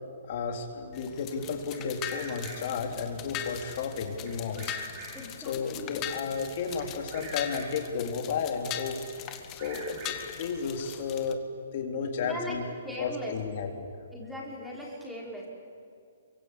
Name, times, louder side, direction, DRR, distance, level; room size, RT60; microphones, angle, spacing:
voice 1, 0.3-4.8 5.4-9.0 9.5-11.4 11.7-12.6 13.0-13.9, left 5 dB, 45° left, 3 dB, 4.1 m, -33 dB
sound 1, 0.9-11.3, left 10 dB, 25° left, 1.7 m, -41 dB
Bird vocalization bird call bird song, 1.7-2.9 4.3-5.4 6.8-8.0 9.3-10.5, right 3 dB, 35° right, 6.2 m, -46 dB
voice 2, 5.1-6.0 12.1-13.4 14.1-15.5, left 1 dB, 5° right, -4 dB, 5.6 m, -40 dB
28.5 x 24.0 x 8.7 m, 2.4 s
hypercardioid pair, 155°, 0 cm